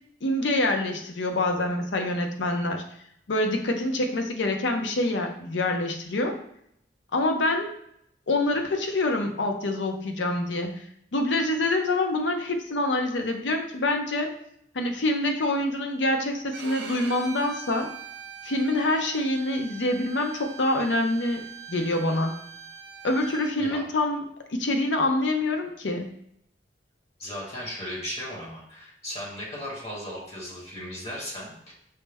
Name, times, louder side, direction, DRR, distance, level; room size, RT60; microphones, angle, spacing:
voice 1, 0.2-2.8 3.3-6.4 7.1-7.7 8.3-10.8 11.1-14.3 14.7-17.9 18.4-22.3 23.0-24.2 24.5-26.1, left 2 dB, 85° left, 4 dB, 0.6 m, -26 dB
Bowed string instrument, 16.5-23.5, right 6 dB, 75° right, 0.6 m, -42 dB
voice 2, 27.2-31.5, equal, 35° left, -4 dB, 1.2 m, -36 dB
5.4 x 2.1 x 3.4 m, 0.73 s
head